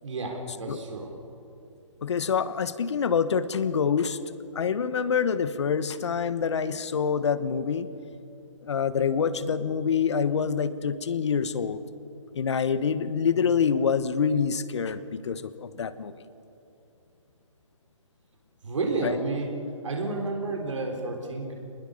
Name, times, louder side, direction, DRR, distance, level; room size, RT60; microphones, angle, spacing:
voice 1, 0.0-1.1 18.6-19.5 19.8-21.5, right 3 dB, 70° right, 1 dB, 4.3 m, -30 dB
voice 2, 2.0-4.2 4.5-7.9 8.6-11.8 12.3-16.1 19.0-19.2, left 6 dB, 60° left, 14 dB, 1.3 m, -26 dB
25.5 x 20.5 x 7.0 m, 2.8 s
figure-of-eight pair, 140°, 17 cm